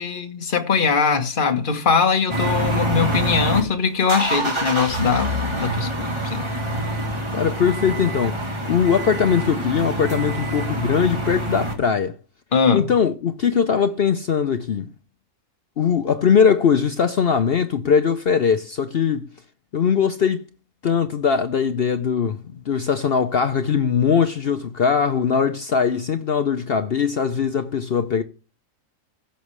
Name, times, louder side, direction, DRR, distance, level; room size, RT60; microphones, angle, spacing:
voice 1, 0.0-6.5 12.5-12.9, left 6 dB, 35° left, 1.3 m, -21 dB
sound 1, 2.3-3.6 4.0-11.7, right 1 dB, 20° right, 1.6 m, -26 dB
voice 2, 7.3-8.4 8.7-12.1 12.7-14.9 15.8-19.3 19.7-20.4 20.8-28.2, left 7 dB, 60° left, 0.6 m, -20 dB
15.5 x 7.0 x 3.2 m
omnidirectional pair, 1.6 m